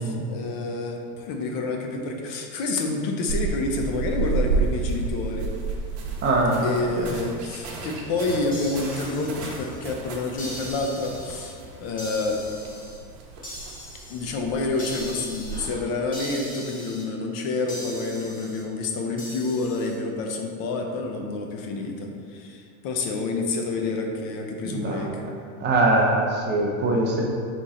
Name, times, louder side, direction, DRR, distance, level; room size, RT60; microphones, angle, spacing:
voice 1, 0.0-5.5 6.6-12.4 14.1-25.2, left 3 dB, 45° left, 2 dB, 0.6 m, -28 dB
sound 1, 3.3-15.7, right 4 dB, 65° right, 1.0 m, -32 dB
voice 2, 6.2-6.7 7.0-7.1 15.5-15.7 24.7-25.0 25.6-27.2, right 2 dB, 20° right, -2 dB, 0.5 m, -22 dB
sound 2, 8.5-9.9 10.4-11.5 12.0-13.0 13.4-14.2 14.8-15.7 16.1-17.0 17.7-18.6 19.2-19.9, left 1 dB, 15° left, 0.8 m, -40 dB
4.2 x 3.0 x 3.6 m, 2.3 s
supercardioid pair, 135°, 50 cm